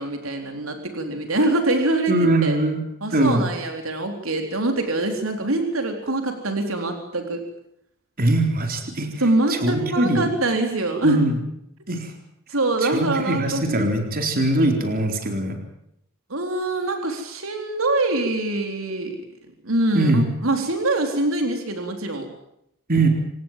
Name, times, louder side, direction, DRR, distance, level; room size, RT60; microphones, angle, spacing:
voice 1, 0.0-2.6 3.0-7.5 9.2-11.2 11.9-12.0 12.5-13.9 14.6-14.7 16.3-19.2 19.6-22.3, right 2 dB, 85° right, 4 dB, 3.9 m, -24 dB
voice 2, 2.1-2.8 3.1-3.4 8.2-9.1 9.5-10.3 11.0-11.4 11.9-12.1 12.8-15.6 19.9-20.3 22.9-23.1, right 2 dB, 45° right, 4 dB, 4.0 m, -21 dB
27.0 x 18.5 x 7.5 m, 0.78 s
head